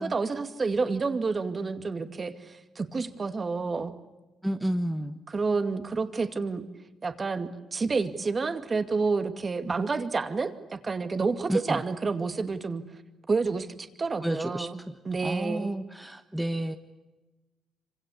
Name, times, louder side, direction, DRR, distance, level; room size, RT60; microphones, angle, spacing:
voice 1, 0.0-3.9 5.3-6.6 7.0-12.8 13.3-14.8 15.1-15.8, right 4 dB, 35° right, 8 dB, 2.3 m, -29 dB
voice 2, 4.4-5.2 11.5-11.8 14.2-15.0 15.2-16.8, right 1 dB, 5° right, 6 dB, 1.3 m, -31 dB
26.0 x 25.5 x 8.6 m, 1.1 s
cardioid pair, 90°, 0 cm